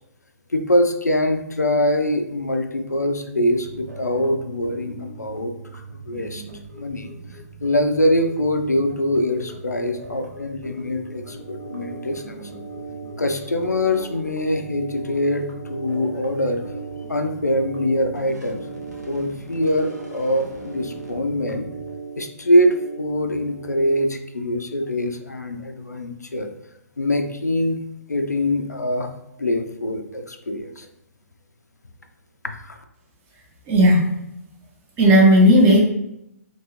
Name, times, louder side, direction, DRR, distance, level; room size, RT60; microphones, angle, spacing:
voice 1, 0.5-6.4 6.7-7.1 7.6-12.5 13.2-16.6 17.1-18.7 19.1-21.7 22.2-26.5 27.0-27.8 28.1-29.1 29.4-30.9 32.6-32.8, left 1 dB, 80° left, 6 dB, 0.4 m, -23 dB
sound 1, 3.5-21.9, right 2 dB, 85° right, 0.9 m, -40 dB
sound 2, 11.2-24.0, right 4 dB, 25° left, 0.6 m, -38 dB
voice 2, 33.7-34.1 35.0-35.8, equal, 20° right, -2 dB, 0.7 m, -13 dB
2.9 x 2.6 x 3.0 m, 0.81 s
figure-of-eight pair, 125°, 9 cm